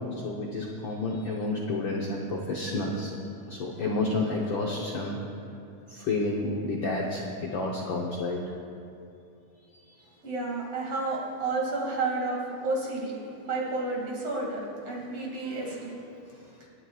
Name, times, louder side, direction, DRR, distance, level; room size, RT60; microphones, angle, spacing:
voice 1, 0.2-3.1 3.5-5.2 5.9-8.4 15.4-15.6, left 2 dB, 90° left, -2 dB, 1.0 m, -30 dB
voice 2, 10.2-13.1 13.4-16.0, right 3 dB, 55° right, -3 dB, 3.1 m, -31 dB
25.5 x 9.5 x 2.4 m, 2.5 s
omnidirectional pair, 3.4 m